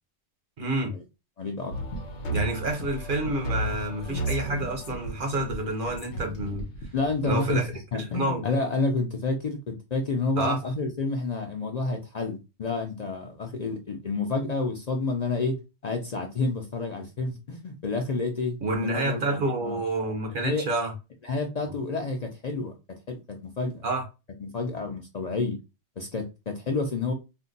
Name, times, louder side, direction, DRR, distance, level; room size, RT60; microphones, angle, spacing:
voice 1, 0.6-0.9 2.3-6.7 7.2-7.7 8.0-8.4 10.4-10.6 18.6-20.9 23.8-24.0, right 2 dB, 55° right, 1.0 m, -28 dB
voice 2, 1.4-1.7 6.9-7.7 7.9-15.6 15.8-19.8 20.4-20.6 21.2-22.7 23.1-23.8 24.4-25.6 26.0-27.1, left 3 dB, 50° left, 0.6 m, -29 dB
sound 1, 1.7-7.7, right 1 dB, 80° left, 1.1 m, -34 dB
2.6 x 2.1 x 3.9 m
omnidirectional pair, 1.1 m